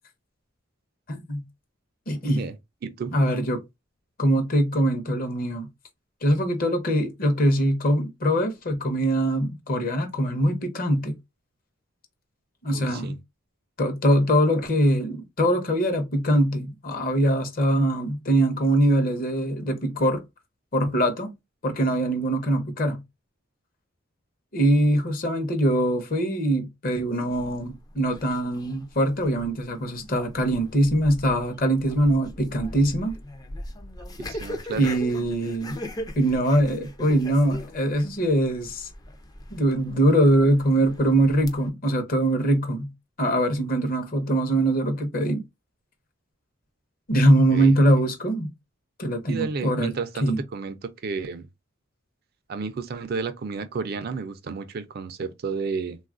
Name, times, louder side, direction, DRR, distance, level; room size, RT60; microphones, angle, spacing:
voice 1, 1.1-1.4 2.1-2.4 3.1-3.6 4.2-5.7 6.2-11.1 12.6-13.2 13.8-20.2 20.7-21.3 21.6-23.0 24.5-33.2 34.7-35.8 36.2-38.9 39.5-42.9 43.2-45.4 47.1-48.5 49.0-49.9 50.2-50.4, right 1 dB, 45° left, 0.7 m, -22 dB
voice 2, 2.2-2.6 2.8-3.2 12.7-13.2 34.2-34.9 36.7-36.9 47.5-47.8 49.3-51.5 52.5-56.0, right 4 dB, 50° right, 0.4 m, -32 dB
sound 1, 27.3-41.7, left 1 dB, 20° left, 0.4 m, -40 dB
3.3 x 2.3 x 2.4 m
head